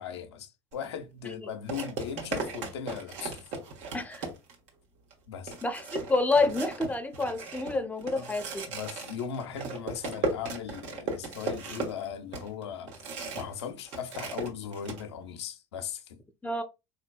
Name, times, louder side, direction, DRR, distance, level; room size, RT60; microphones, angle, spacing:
voice 1, 0.0-3.5 5.3-5.5 8.1-8.3 8.7-16.2, left 7 dB, 90° left, 0.5 m, -38 dB
sound 1, 0.7-0.9 1.7-4.7 5.1-5.2 5.5-13.6 13.9-15.0, right 3 dB, 60° right, 1.1 m, -36 dB
voice 2, 5.6-8.7 16.4-16.6, left 3 dB, 10° left, 0.6 m, -28 dB
3.8 x 2.7 x 2.2 m
hypercardioid pair, 80°, 14 cm